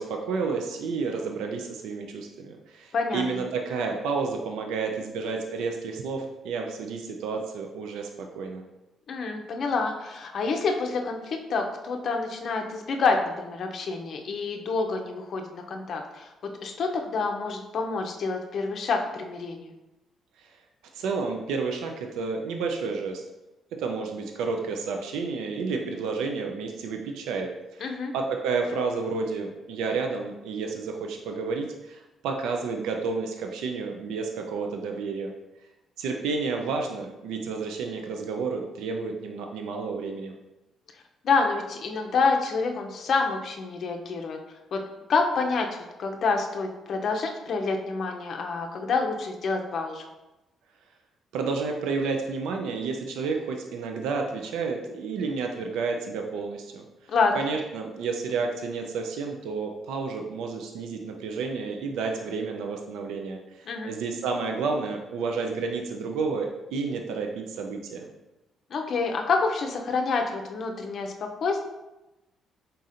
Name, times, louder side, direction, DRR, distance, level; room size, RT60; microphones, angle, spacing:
voice 1, 0.0-8.6 20.4-20.6 20.9-23.2 23.7-35.3 36.0-40.3 51.3-68.1, right 4 dB, 90° right, 3 dB, 0.4 m, -31 dB
voice 2, 2.9-3.2 9.1-16.3 16.6-19.7 27.8-28.1 41.2-44.4 44.7-44.8 45.1-50.0 57.1-57.5 63.7-63.9 68.7-71.7, left 4 dB, 60° left, 3 dB, 0.5 m, -27 dB
4.1 x 3.9 x 2.5 m, 0.99 s
cardioid pair, 90°, 0 cm